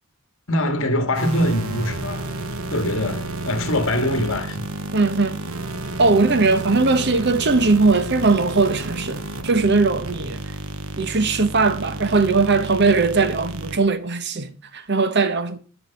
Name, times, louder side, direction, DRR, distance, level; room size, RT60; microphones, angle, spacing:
voice 1, 0.5-2.3 2.7-4.7, left 1 dB, 60° left, 2.0 m, -23 dB
sound 1, 1.1-13.8, right 2 dB, 70° right, 1.3 m, -31 dB
voice 2, 4.9-5.4 6.0-10.4 11.0-15.6, right 3 dB, 50° right, 1.1 m, -19 dB
14.0 x 5.1 x 7.2 m
head